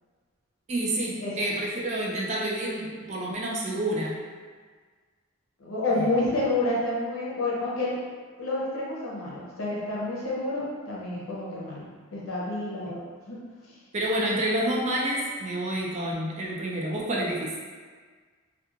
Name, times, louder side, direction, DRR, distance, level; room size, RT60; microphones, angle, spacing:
voice 1, 0.7-4.1 6.0-6.1 13.9-17.5, right 1 dB, 30° right, -3 dB, 0.3 m, -28 dB
voice 2, 5.6-8.0 8.4-13.4, left 2 dB, 65° left, -5 dB, 0.7 m, -29 dB
2.9 x 2.3 x 2.3 m, 1.5 s
head